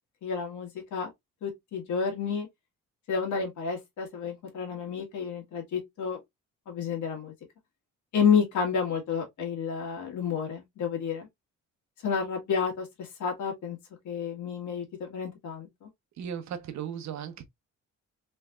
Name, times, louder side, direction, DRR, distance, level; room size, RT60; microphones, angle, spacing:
voice 1, 0.2-1.1 1.4-2.5 3.1-6.2 6.7-7.3 8.1-11.3 12.0-13.8 14.1-15.9, left 6 dB, 75° left, 1.7 m, -30 dB
voice 2, 16.2-17.4, right 8 dB, 65° right, 0.8 m, -36 dB
3.3 x 3.2 x 2.3 m
cardioid pair, 90°, 30 cm